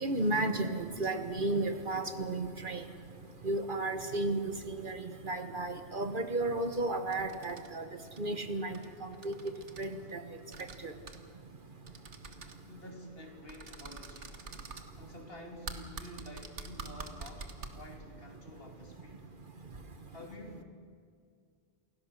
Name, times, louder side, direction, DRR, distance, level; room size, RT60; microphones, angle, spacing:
voice 1, 0.0-2.8 3.4-7.8 8.2-9.3 9.8-10.2 10.8-10.9, right 2 dB, 50° right, 8 dB, 1.3 m, -33 dB
sound 1, 7.1-7.7 8.1-8.2 8.7-8.9 9.1-9.9 10.5-10.8 11.1-11.2 11.9-12.5 13.5-14.8 15.6-17.7, right 4 dB, 80° right, 1.8 m, -45 dB
voice 2, 12.6-14.4 15.0-19.3 20.1-20.6, left 1 dB, 55° left, 2 dB, 3.0 m, -49 dB
28.0 x 17.0 x 6.5 m, 2.2 s
omnidirectional pair, 1.2 m